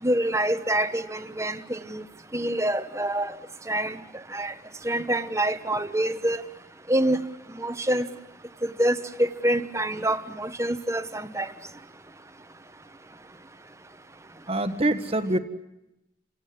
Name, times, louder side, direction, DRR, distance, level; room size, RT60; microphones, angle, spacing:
voice 1, 0.0-2.0 2.3-3.4 3.7-4.0 4.3-4.5 4.8-6.4 6.9-7.2 7.5-8.1 8.6-11.5, right 1 dB, 15° right, 10 dB, 1.2 m, -26 dB
voice 2, 14.5-15.4, right 1 dB, 30° right, 10 dB, 1.5 m, -24 dB
29.5 x 17.5 x 9.5 m, 0.90 s
head